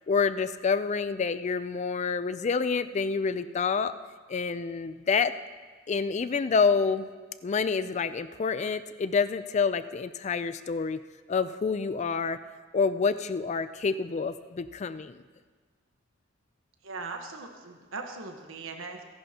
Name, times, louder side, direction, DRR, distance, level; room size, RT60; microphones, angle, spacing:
voice 1, 0.1-3.9 4.3-5.3 5.9-7.1 7.4-11.0 11.3-12.4 12.7-15.2, left 5 dB, 35° left, 13 dB, 0.4 m, -28 dB
voice 2, 16.8-19.0, right 3 dB, 85° right, 4 dB, 1.2 m, -39 dB
29.0 x 11.0 x 2.9 m, 1.5 s
head